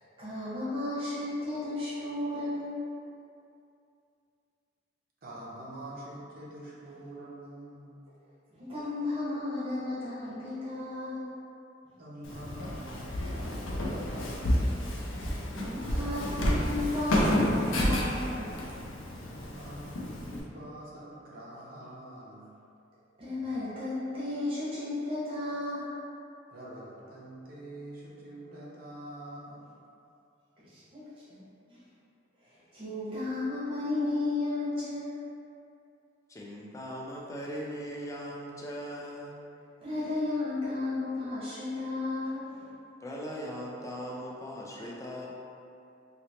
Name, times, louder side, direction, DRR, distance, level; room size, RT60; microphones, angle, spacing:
voice 1, 0.0-2.8 8.5-11.3 15.5-18.5 23.2-26.0 30.6-31.4 31.7-31.8 32.4-35.2 39.8-42.7, left 2 dB, 30° right, -11 dB, 1.1 m, -34 dB
voice 2, 5.2-8.0 12.0-14.7 19.1-22.5 26.5-29.6, right 1 dB, 50° right, -6 dB, 0.7 m, -45 dB
Walk footsteps, 12.2-20.4, left 1 dB, 85° left, 0.5 m, -30 dB
voice 3, 36.3-39.3 43.0-45.3, equal, 15° left, -3 dB, 0.4 m, -39 dB
3.0 x 2.8 x 2.7 m, 2.6 s
head